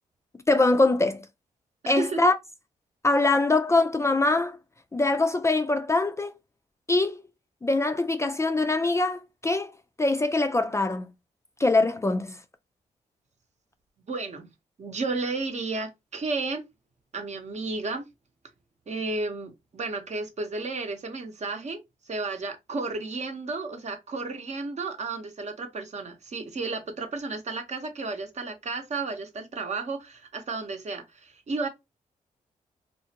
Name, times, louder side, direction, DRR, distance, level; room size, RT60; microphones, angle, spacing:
voice 1, 0.5-1.3 1.9-2.4 3.0-4.6 4.9-6.3 6.9-7.2 7.6-9.7 10.0-11.1 11.6-12.4, left 2 dB, 20° left, 0.4 m, -23 dB
voice 2, 1.8-2.2 14.1-14.5 14.8-16.6 17.1-18.0 18.9-21.8 22.1-31.7, right 3 dB, 50° right, 0.8 m, -32 dB
2.5 x 2.0 x 2.8 m
supercardioid pair, 50°, 15 cm